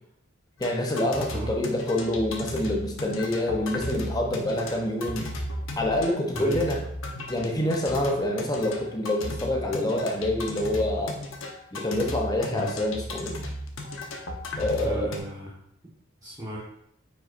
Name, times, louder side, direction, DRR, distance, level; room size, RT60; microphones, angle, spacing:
sound 1, 0.6-15.2, left 1 dB, 75° left, 1.1 m, -35 dB
voice 1, 0.6-5.3 5.8-6.8 7.3-11.2 11.7-13.4 14.6-15.2, left 1 dB, 20° left, 1 dB, 0.8 m, -27 dB
voice 2, 14.8-15.5 16.2-16.6, right 1 dB, 20° right, -6 dB, 1.4 m, -34 dB
9.0 x 5.4 x 2.6 m, 0.73 s
head